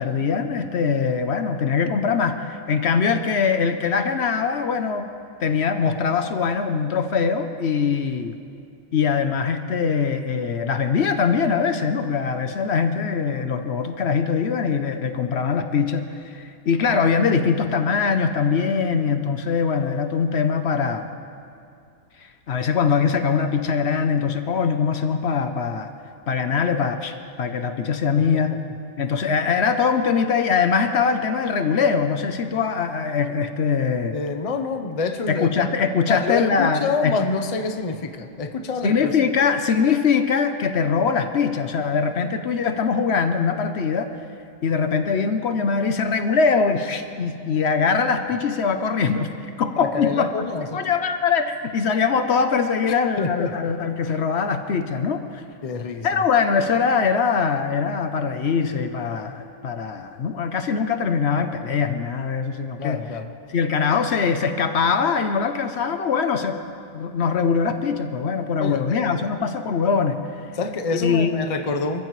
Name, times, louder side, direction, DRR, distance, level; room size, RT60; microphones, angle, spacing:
voice 1, 0.0-5.1 5.4-8.3 8.9-21.1 22.2-25.9 26.3-28.5 29.0-34.2 35.3-37.2 38.8-44.1 44.6-49.3 49.6-50.3 50.7-55.4 56.0-63.0 63.5-66.6 66.9-70.2 70.9-71.4, left 6 dB, 65° left, 8 dB, 1.0 m, -22 dB
voice 2, 34.1-35.6 36.1-39.1 49.8-50.8 52.9-53.7 55.6-56.1 62.8-63.3 68.6-69.2 70.6-72.0, left 4 dB, 35° left, 7 dB, 0.8 m, -27 dB
27.0 x 15.0 x 3.2 m, 2.4 s
omnidirectional pair, 1.2 m